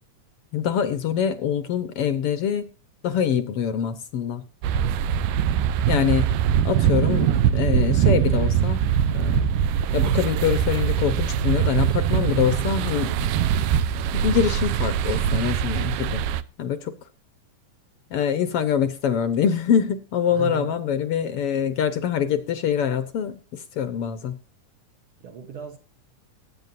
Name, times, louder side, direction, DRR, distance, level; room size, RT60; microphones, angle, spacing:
voice 1, 0.5-2.7 3.0-4.4 5.9-6.3 6.6-8.8 9.1-9.5 9.9-13.3 14.1-16.2 16.6-16.9 18.1-24.4, left 8 dB, 65° left, 1.5 m, -24 dB
sound 1, 4.6-16.4, right 9 dB, 85° right, 2.3 m, -22 dB
voice 2, 20.3-20.8 25.2-25.8, right 6 dB, 55° right, 1.6 m, -35 dB
21.0 x 8.8 x 2.6 m
omnidirectional pair, 3.7 m